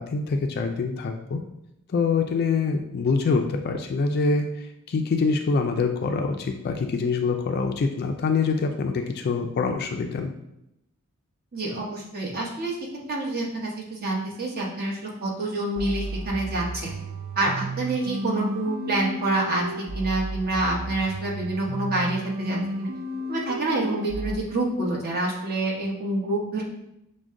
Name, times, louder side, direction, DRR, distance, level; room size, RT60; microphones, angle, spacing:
voice 1, 0.0-1.4 1.9-10.3, left 4 dB, 50° left, 4 dB, 0.3 m, -25 dB
voice 2, 11.5-12.8 13.1-16.9 17.3-19.6 19.9-22.9 23.3-26.6, right 2 dB, 45° right, -2 dB, 1.0 m, -27 dB
sound 1, 15.8-24.3, right 1 dB, 65° right, 0.4 m, -33 dB
6.1 x 2.2 x 3.6 m, 0.83 s
head